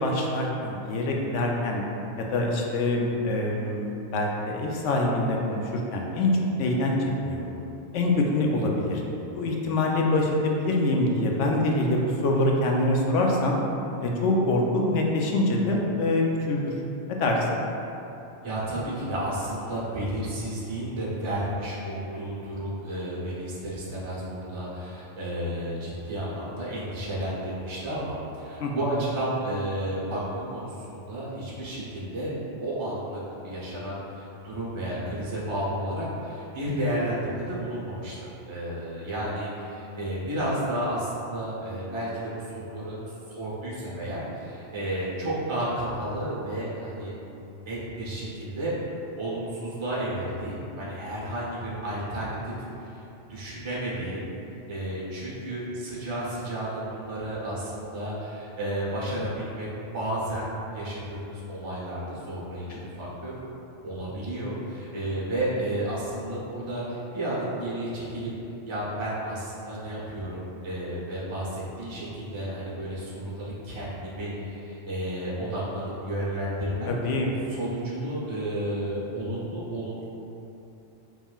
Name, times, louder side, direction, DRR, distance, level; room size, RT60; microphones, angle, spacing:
voice 1, 0.0-1.8 2.2-6.3 6.6-7.5 7.9-9.0 9.3-13.6 14.0-16.7 17.1-17.6 28.6-29.0 62.7-62.8 76.9-77.3, left 2 dB, 80° left, -1 dB, 0.9 m, -25 dB
voice 2, 18.4-32.3 32.6-43.0 43.3-47.1 47.5-48.7 49.2-52.5 52.8-53.0 53.3-54.3 54.7-59.7 59.9-63.3 63.8-68.3 68.7-76.9 77.5-80.0, right 1 dB, 25° right, -8 dB, 0.8 m, -32 dB
5.4 x 3.1 x 2.3 m, 2.9 s
omnidirectional pair, 1.2 m